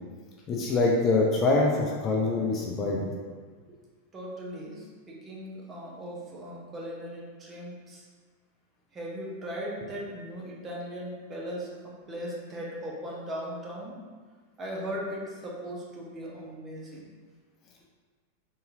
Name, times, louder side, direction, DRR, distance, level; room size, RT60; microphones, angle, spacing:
voice 1, 0.5-3.1, left 3 dB, 30° left, -1 dB, 0.4 m, -24 dB
voice 2, 4.1-8.1 8.9-14.0 14.6-17.1, equal, 20° right, -3 dB, 0.7 m, -38 dB
3.7 x 2.7 x 2.6 m, 1.5 s
figure-of-eight pair, 90°, 0 cm